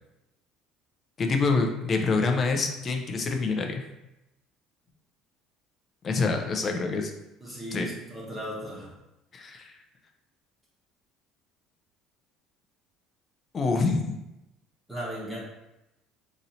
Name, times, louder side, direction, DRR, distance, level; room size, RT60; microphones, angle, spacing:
voice 1, 1.2-3.8 6.0-7.1 7.7-7.9 9.3-9.7 13.5-14.2, left 4 dB, 35° left, 3 dB, 0.5 m, -26 dB
voice 2, 7.4-8.9 14.9-15.4, right 1 dB, 10° right, -6 dB, 1.0 m, -36 dB
3.0 x 2.7 x 4.1 m, 0.92 s
cardioid pair, 115°, 0 cm